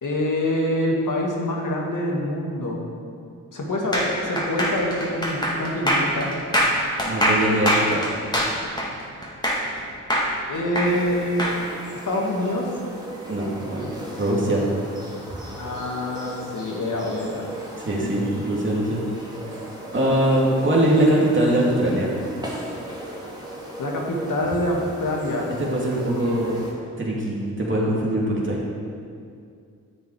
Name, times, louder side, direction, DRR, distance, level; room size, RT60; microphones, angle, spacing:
voice 1, 0.0-2.8 3.5-6.3 10.5-11.4 12.0-12.7 15.6-17.5 18.0-18.1 23.8-25.5, left 1 dB, 60° left, -1 dB, 2.0 m, -25 dB
sound 1, 3.9-9.8 10.1-11.6, equal, 10° left, 2.4 m, -23 dB
voice 2, 7.1-8.0 13.3-13.9 14.2-14.6 17.8-19.0 19.9-22.1 25.6-26.5 27.0-28.6, right 1 dB, 35° right, -4 dB, 2.6 m, -22 dB
sound 2, 10.8-26.7, right 1 dB, 10° right, 2.4 m, -37 dB
9.9 x 7.2 x 4.9 m, 2.3 s
supercardioid pair, 40°, 36 cm